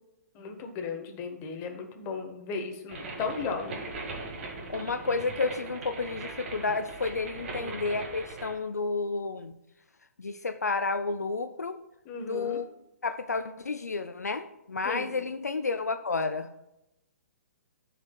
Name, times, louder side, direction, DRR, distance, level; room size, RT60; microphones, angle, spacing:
voice 1, 0.3-3.8 7.6-7.8 12.0-12.6 14.8-15.3, left 4 dB, 25° left, 4 dB, 1.3 m, -36 dB
sound 1, 2.9-8.6, right 3 dB, 45° right, 2.0 m, -39 dB
voice 2, 4.7-9.5 10.2-11.8 12.3-12.7 13.0-16.5, left 4 dB, 80° left, 9 dB, 0.5 m, -31 dB
13.0 x 5.0 x 2.3 m, 0.88 s
figure-of-eight pair, 125°, 9 cm